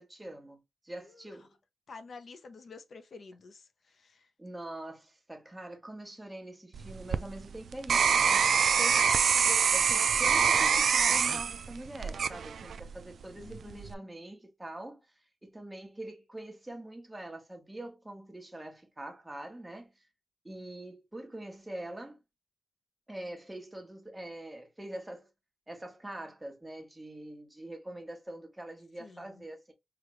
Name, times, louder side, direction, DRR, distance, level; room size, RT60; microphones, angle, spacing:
voice 1, 0.0-1.5 4.4-9.1 9.5-15.0 15.4-19.9 20.4-22.2 23.1-25.3 25.7-29.7, right 1 dB, 10° right, 1.2 m, -44 dB
voice 2, 1.9-4.3 13.3-14.1 29.0-29.5, left 4 dB, 55° left, 0.7 m, -50 dB
sound 1, 6.7-13.0 13.5-13.9, right 6 dB, 70° right, 0.3 m, -25 dB
5.0 x 2.4 x 3.1 m
cardioid pair, 100°, 0 cm